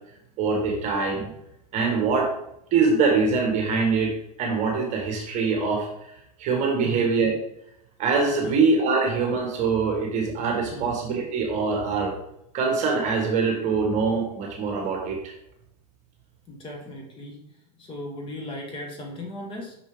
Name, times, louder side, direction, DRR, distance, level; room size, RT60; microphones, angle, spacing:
voice 1, 0.4-1.3 1.7-2.3 2.7-4.1 4.4-5.9 6.4-7.3 8.0-12.1 12.5-15.3, right 4 dB, 35° right, 1 dB, 1.4 m, -23 dB
voice 2, 16.5-17.4 17.8-19.8, left 1 dB, 25° left, 1 dB, 1.6 m, -37 dB
6.0 x 5.2 x 3.6 m, 0.79 s
hypercardioid pair, 120°, 21 cm